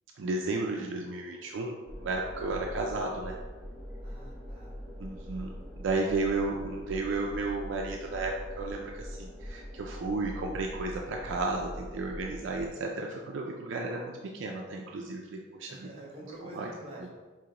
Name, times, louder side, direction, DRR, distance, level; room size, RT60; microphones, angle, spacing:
voice 1, 0.2-1.8 2.0-3.4 5.0-15.9 16.5-16.7 17.0-17.1, right 3 dB, 65° right, 0 dB, 0.4 m, -33 dB
sound 1, 1.9-12.7, equal, 5° right, 0.6 m, -42 dB
voice 2, 4.0-4.7 15.7-17.1, right 1 dB, 30° right, -4 dB, 1.3 m, -47 dB
5.0 x 3.0 x 2.9 m, 1.4 s
head